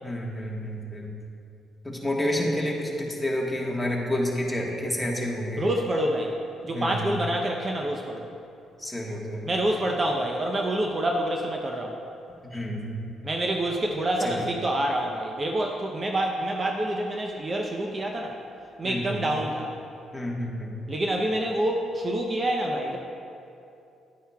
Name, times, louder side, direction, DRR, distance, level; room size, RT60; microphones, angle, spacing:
voice 1, 0.0-1.1 1.8-5.6 6.7-7.1 8.8-9.5 12.4-13.0 14.2-14.5 18.8-19.2 20.1-20.7, left 1 dB, 5° left, -2 dB, 1.4 m, -29 dB
voice 2, 5.6-6.3 6.6-8.3 9.4-12.0 13.2-18.4 18.8-19.7 20.9-23.0, right 1 dB, 30° right, 1 dB, 0.7 m, -27 dB
10.5 x 9.2 x 2.3 m, 2.6 s
cardioid pair, 90°, 0 cm